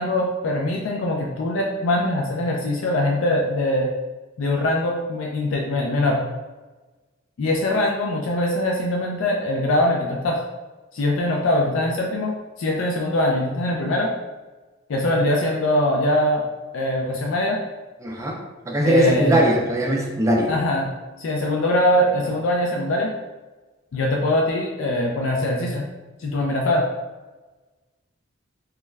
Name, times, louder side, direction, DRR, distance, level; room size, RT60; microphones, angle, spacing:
voice 1, 0.0-3.9 4.4-6.2 7.4-10.4 10.9-14.1 14.9-16.4 16.7-17.6 18.9-19.4 20.5-20.9 21.2-23.1 23.9-25.9 26.2-26.9, left 1 dB, 70° left, -1 dB, 0.4 m, -22 dB
voice 2, 18.0-18.4 18.7-20.5, equal, 15° right, -1 dB, 0.3 m, -20 dB
2.3 x 2.0 x 3.2 m, 1.2 s
head